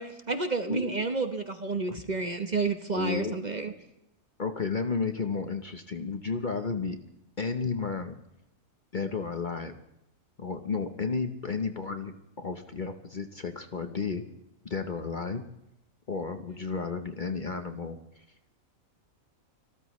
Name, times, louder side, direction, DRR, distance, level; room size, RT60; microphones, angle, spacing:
voice 1, 0.0-3.7, right 3 dB, 35° right, 7 dB, 1.1 m, -30 dB
voice 2, 0.7-1.0 1.9-2.0 2.9-3.4 4.4-7.0 7.4-8.2 8.9-9.8 10.4-14.2 14.6-15.4 16.1-18.2, left 4 dB, 40° left, 7 dB, 1.0 m, -32 dB
26.0 x 14.0 x 3.2 m, 0.83 s
omnidirectional pair, 1.4 m